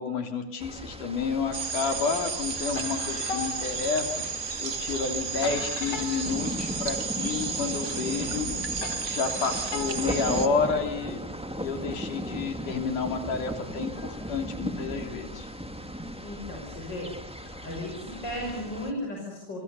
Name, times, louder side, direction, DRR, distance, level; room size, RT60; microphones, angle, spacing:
voice 1, 0.0-8.5 9.0-11.2 11.6-15.5, left 5 dB, 90° left, 5 dB, 4.7 m, -30 dB
sound 1, 0.6-18.9, equal, 5° right, 1.3 m, -37 dB
sound 2, 1.3-2.0 2.3-7.5 7.8-11.1 11.8-15.4 16.1-16.2 17.2-18.6, left 4 dB, 55° left, 4.2 m, -43 dB
sound 3, 1.5-10.5, right 5 dB, 35° right, 1.2 m, -33 dB
voice 2, 16.2-17.1 17.6-19.6, left 1 dB, 35° left, -1 dB, 6.6 m, -35 dB
29.5 x 25.5 x 7.0 m, 0.69 s
omnidirectional pair, 3.5 m